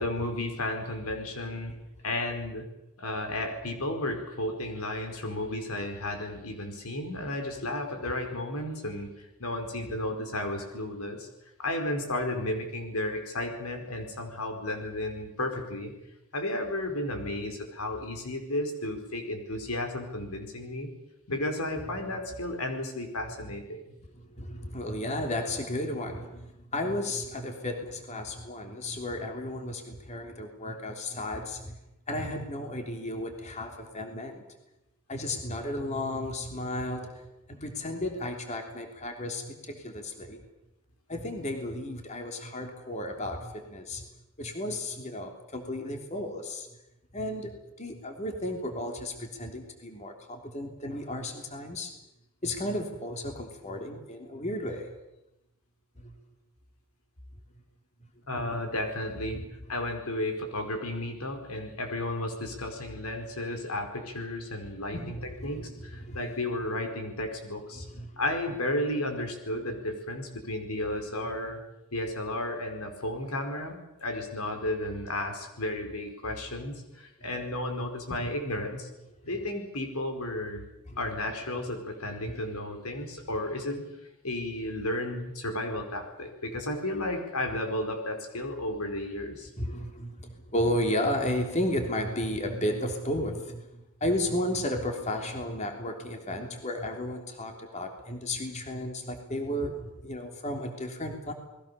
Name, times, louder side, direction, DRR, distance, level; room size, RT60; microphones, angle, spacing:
voice 1, 0.0-1.7 2.0-2.7 3.0-11.3 11.6-15.9 16.3-20.9 21.3-23.8 58.3-59.4 59.7-65.2 65.4-67.8 68.2-71.6 71.9-78.9 79.2-80.6 81.0-83.8 84.2-89.5, left 1 dB, 90° left, 5 dB, 4.8 m, -33 dB
voice 2, 24.1-31.8 32.1-34.4 35.1-40.4 41.1-44.1 44.4-46.7 47.1-51.9 52.4-54.9 56.0-56.2 59.3-59.4 64.9-66.4 67.7-68.2 77.2-77.3 78.2-78.3 80.9-81.0 82.2-82.4 89.6-101.3, left 1 dB, 30° left, 3 dB, 3.3 m, -33 dB
28.5 x 20.5 x 6.9 m, 0.92 s
head